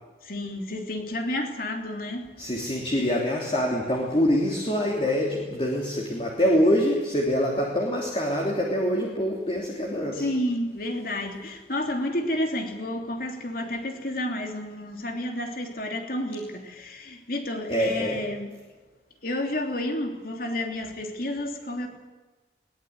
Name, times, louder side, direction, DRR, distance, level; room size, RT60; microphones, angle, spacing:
voice 1, 0.2-2.3 10.1-18.5 19.2-21.9, left 1 dB, 50° left, 3 dB, 3.2 m, -30 dB
voice 2, 2.4-10.2 17.7-18.2, equal, 30° left, -2 dB, 3.2 m, -25 dB
21.5 x 19.0 x 9.5 m, 1.3 s
head